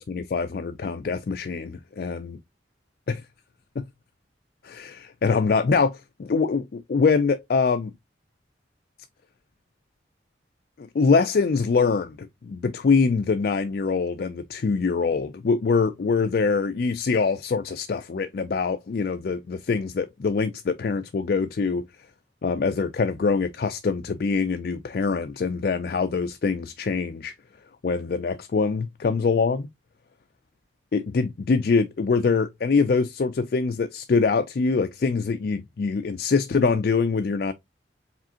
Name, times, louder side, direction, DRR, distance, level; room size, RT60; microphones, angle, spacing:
voice 1, 0.0-2.4 3.1-3.2 3.8-3.9 4.6-7.9 10.8-21.8 22.4-27.3 27.8-29.7 30.9-37.5, left 4 dB, 50° left, 0.4 m, -24 dB
4.8 x 3.4 x 2.8 m
head